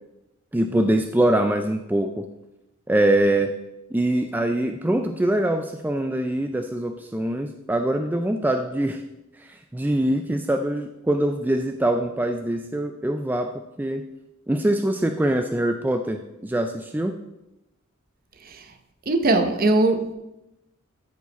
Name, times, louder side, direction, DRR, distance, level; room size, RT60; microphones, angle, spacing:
voice 1, 0.5-2.3 2.9-3.5 3.9-9.0 9.4-13.5 13.8-14.0 14.5-17.1, right 1 dB, 10° right, 5 dB, 0.3 m, -23 dB
voice 2, 18.4-18.7 19.1-20.1, right 2 dB, 45° right, 8 dB, 0.8 m, -21 dB
13.0 x 4.8 x 4.1 m, 0.93 s
head